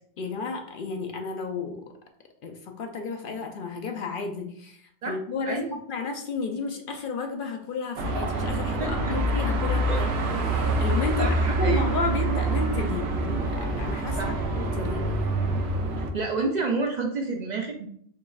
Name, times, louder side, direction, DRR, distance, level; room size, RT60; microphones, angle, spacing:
voice 1, 0.2-1.8 2.4-5.6 5.9-14.2 14.6-15.1, left 4 dB, 60° left, 4 dB, 0.6 m, -32 dB
voice 2, 5.4-5.8 8.8-9.1 9.9-10.0 11.2-11.8 14.2-14.3 15.9-17.9, right 3 dB, 55° right, 1 dB, 0.5 m, -29 dB
Car passing by / Traffic noise roadway noise / Engine, 8.0-16.1, right 2 dB, 80° right, 0.9 m, -26 dB
4.6 x 3.1 x 2.3 m, 0.65 s
omnidirectional pair, 1.1 m